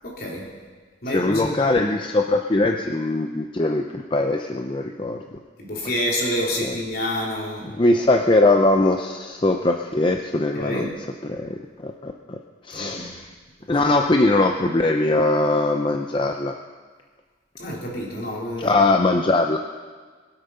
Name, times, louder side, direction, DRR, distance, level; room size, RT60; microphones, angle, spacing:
voice 1, 0.0-0.5 1.0-1.7 5.6-7.7 10.5-10.9 12.7-13.1 17.6-18.7, left 1 dB, 55° left, -2 dB, 3.4 m, -28 dB
voice 2, 1.1-5.2 6.6-6.8 7.6-10.9 11.2-11.5 11.8-12.4 12.6-13.2 13.7-16.5 18.6-19.6, left 2 dB, 30° left, 3 dB, 0.6 m, -21 dB
21.5 x 8.1 x 5.5 m, 1.5 s
head